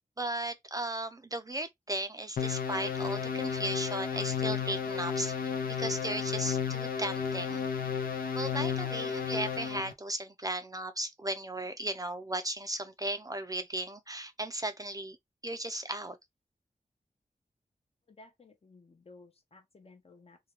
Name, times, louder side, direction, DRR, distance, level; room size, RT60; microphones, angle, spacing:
voice 1, 0.2-5.5 5.8-7.7 8.3-15.2 15.4-16.2, right 1 dB, 25° right, 0.4 m, -36 dB
sound 1, 2.4-9.9, left 7 dB, 80° left, 0.5 m, -33 dB
voice 2, 18.1-20.4, left 3 dB, 40° left, 0.7 m, -56 dB
2.4 x 2.2 x 2.9 m
cardioid pair, 55°, 15 cm